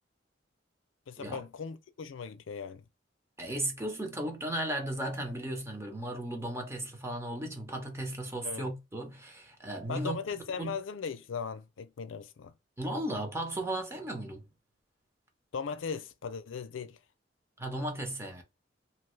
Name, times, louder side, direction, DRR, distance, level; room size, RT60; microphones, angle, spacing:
voice 1, 1.1-2.8 8.4-8.6 9.9-12.5 15.5-17.0, left 6 dB, 80° left, 0.5 m, -38 dB
voice 2, 3.4-10.2 10.6-10.8 12.8-14.5 17.6-18.4, right 1 dB, 15° right, 0.9 m, -35 dB
2.8 x 2.3 x 3.1 m
head